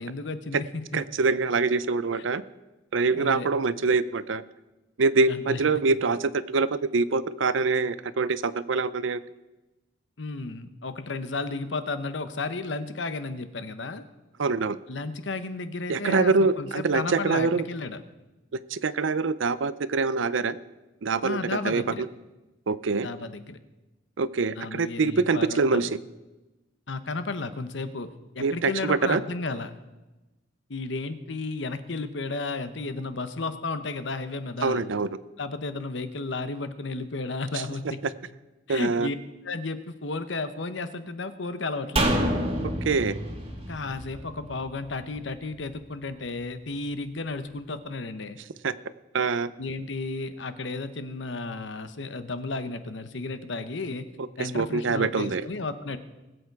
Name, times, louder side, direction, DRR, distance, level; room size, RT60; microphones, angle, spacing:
voice 1, 0.0-1.0 3.1-3.5 5.3-5.6 5.9-6.0 10.2-14.0 14.9-18.0 21.2-22.0 23.0-23.6 24.6-25.9 26.9-29.7 30.7-34.8 35.4-38.0 38.7-39.2 39.4-42.1 43.7-48.4 49.6-54.1 54.4-56.0, left 3 dB, 70° left, 11 dB, 1.0 m, -33 dB
voice 2, 0.9-2.4 2.9-4.4 5.0-9.2 14.4-14.8 15.9-17.6 18.7-20.6 21.0-21.4 21.6-22.1 22.7-23.1 24.2-26.0 28.4-29.2 34.6-35.2 37.5-37.6 38.7-39.1 42.8-43.2 48.6-48.7 49.1-49.5 54.2-55.4, right 4 dB, 85° right, 16 dB, 0.6 m, -25 dB
sound 1, 42.0-45.3 45.6-45.7, right 1 dB, 30° right, 1.8 m, -28 dB
20.0 x 8.1 x 4.7 m, 1.1 s
head